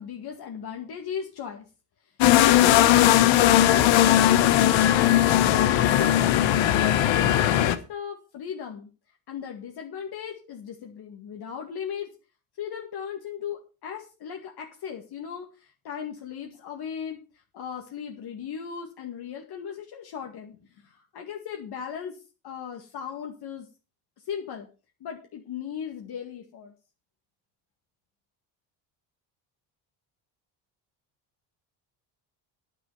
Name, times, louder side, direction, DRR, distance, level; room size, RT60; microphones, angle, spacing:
voice 1, 0.0-1.6 2.4-3.2 3.5-6.7 7.3-8.9 9.3-12.1 12.6-22.2 22.4-23.7 24.3-24.7 25.0-26.7, left 7 dB, 55° left, 2 dB, 2.1 m, -37 dB
sound 1, 2.2-7.8, left 12 dB, 80° left, 1.3 m, -19 dB
9.6 x 9.3 x 5.6 m, 0.33 s
cardioid pair, 115°, 45 cm